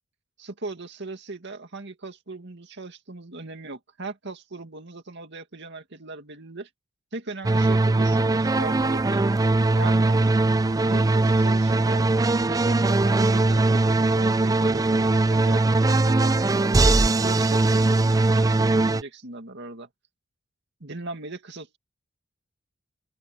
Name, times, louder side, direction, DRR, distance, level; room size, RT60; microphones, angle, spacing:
voice 1, 0.4-6.7 7.1-10.2 10.9-12.1 12.4-19.9 20.8-21.8, right 2 dB, 60° right, 2.3 m, -39 dB
sound 1, 7.4-19.0, right 2 dB, 20° right, 0.4 m, -20 dB
open air
head